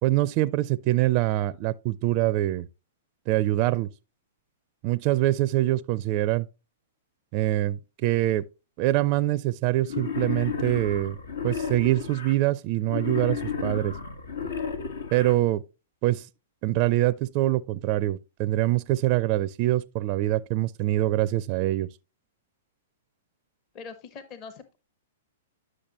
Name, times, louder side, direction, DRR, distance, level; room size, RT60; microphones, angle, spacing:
voice 1, 0.0-2.7 3.3-3.9 4.8-6.5 7.3-8.4 8.8-11.2 11.4-14.0 15.1-15.6 16.0-16.3 16.6-21.9, right 16 dB, 40° right, 0.4 m, -24 dB
Wild animals, 9.8-12.3 12.8-15.3, left 6 dB, 85° left, 1.5 m, -32 dB
voice 2, 23.7-24.8, left 5 dB, 35° left, 0.9 m, -42 dB
10.5 x 6.4 x 3.0 m
hypercardioid pair, 125°, 0 cm